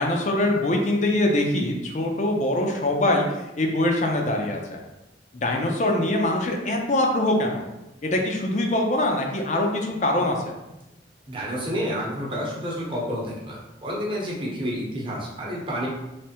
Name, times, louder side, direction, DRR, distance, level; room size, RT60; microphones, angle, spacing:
voice 1, 0.0-3.3 3.6-4.8 5.3-7.6 8.0-10.5, left 1 dB, 40° left, 1 dB, 0.5 m, -23 dB
voice 2, 11.3-15.9, equal, 30° right, -4 dB, 0.9 m, -29 dB
3.4 x 3.1 x 2.9 m, 0.96 s
head